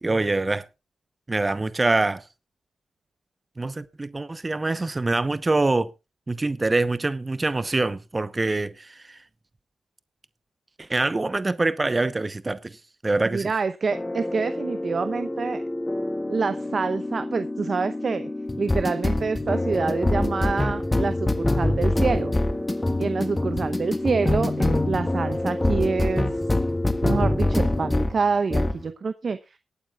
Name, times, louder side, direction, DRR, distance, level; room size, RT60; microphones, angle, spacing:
voice 1, 0.0-0.6 1.3-2.2 3.6-5.9 6.3-9.2 10.8-12.8 13.0-13.5, right 2 dB, 30° right, 0.9 m, -25 dB
voice 2, 13.2-15.6 16.3-18.3 18.6-22.4 23.0-26.4 27.0-29.6, right 5 dB, 55° right, 0.7 m, -27 dB
sound 1, 13.9-28.2 28.5-28.8, left 1 dB, 20° left, 1.5 m, -25 dB
23.0 x 8.9 x 2.4 m
supercardioid pair, 45°, 0 cm